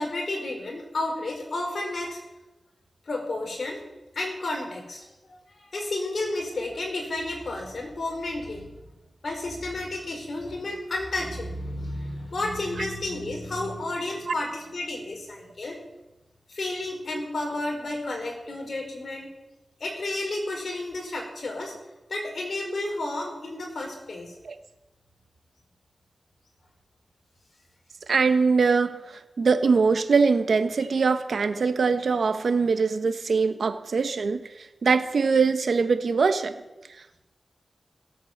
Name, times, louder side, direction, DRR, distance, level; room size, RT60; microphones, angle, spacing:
voice 1, 0.0-2.2 3.1-3.8 4.1-5.1 5.5-8.8 9.2-15.8 16.5-19.3 19.8-21.7 22.1-24.3, left 2 dB, 65° left, 1 dB, 4.9 m, -31 dB
voice 2, 28.1-36.6, right 4 dB, 80° right, 10 dB, 1.1 m, -22 dB
17.0 x 8.6 x 7.3 m, 1.0 s
cardioid pair, 50°, 0 cm